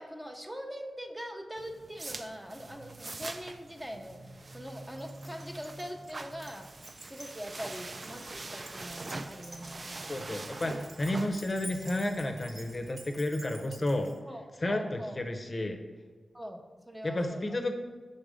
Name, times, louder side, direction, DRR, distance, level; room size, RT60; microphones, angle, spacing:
voice 1, 0.0-6.7 7.1-10.4 14.3-15.2 16.3-17.6, equal, 10° right, 4 dB, 0.6 m, -43 dB
sound 1, 1.6-12.9, right 2 dB, 45° right, 0.3 m, -44 dB
Keys jangling, 5.0-14.2, right 2 dB, 60° right, 0.9 m, -51 dB
voice 2, 10.1-14.1 14.6-15.8 17.0-17.7, left 1 dB, 40° left, 5 dB, 0.6 m, -31 dB
5.1 x 4.0 x 5.0 m, 1.3 s
cardioid pair, 55°, 0 cm